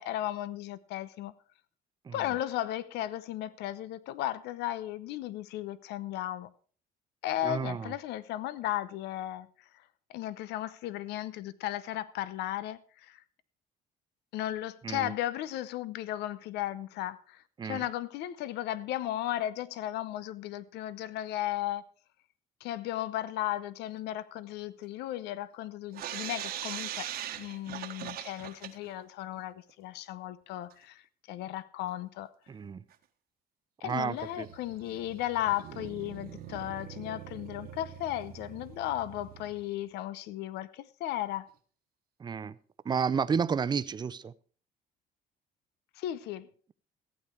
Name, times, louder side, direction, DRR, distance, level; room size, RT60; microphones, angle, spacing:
voice 1, 0.0-1.3 2.1-6.5 7.2-9.5 10.1-13.2 14.3-21.8 22.6-27.1 27.4-32.3 33.8-41.5 46.0-46.5, left 13 dB, 85° left, 0.7 m, -35 dB
voice 2, 7.4-7.9 14.8-15.1 17.6-17.8 32.5-32.8 33.8-34.5 42.2-42.6 42.8-44.3, right 6 dB, 25° right, 0.5 m, -31 dB
sound 1, 25.9-29.0 29.4-29.5 29.7-29.8 30.7-30.8 31.9-32.0 32.5-32.6 32.9-33.0 34.1-39.7, right 11 dB, 65° right, 1.3 m, -42 dB
15.0 x 8.8 x 4.6 m
cardioid pair, 110°, 17 cm